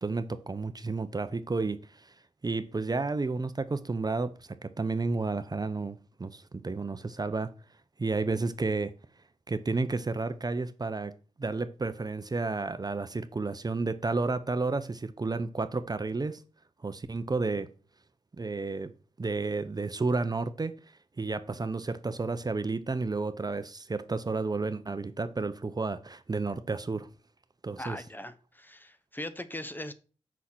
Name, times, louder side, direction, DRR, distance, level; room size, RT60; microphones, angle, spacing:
voice 1, 0.0-1.8 2.4-4.3 4.6-7.5 8.0-8.9 9.5-11.1 11.4-16.4 16.8-17.7 18.4-18.9 19.2-20.7 21.2-27.1 27.6-28.0, right 3 dB, 35° right, 0.7 m, -31 dB
voice 2, 27.8-29.9, left 1 dB, 15° left, 0.9 m, -40 dB
6.3 x 5.6 x 6.0 m
cardioid pair, 65°, 11 cm